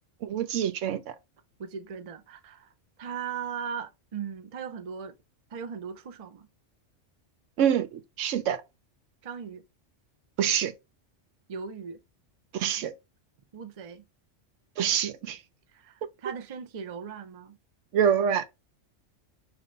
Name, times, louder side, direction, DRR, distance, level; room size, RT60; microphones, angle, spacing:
voice 1, 0.2-1.1 7.6-8.6 10.4-10.7 12.5-12.9 14.8-15.4 17.9-18.4, right 8 dB, 80° right, 1.0 m, -26 dB
voice 2, 1.6-2.7 3.0-5.1 5.5-6.5 9.2-9.6 11.5-12.0 13.5-14.0 15.7-17.6, right 7 dB, 40° right, 0.5 m, -38 dB
5.2 x 2.9 x 3.2 m
omnidirectional pair, 1.3 m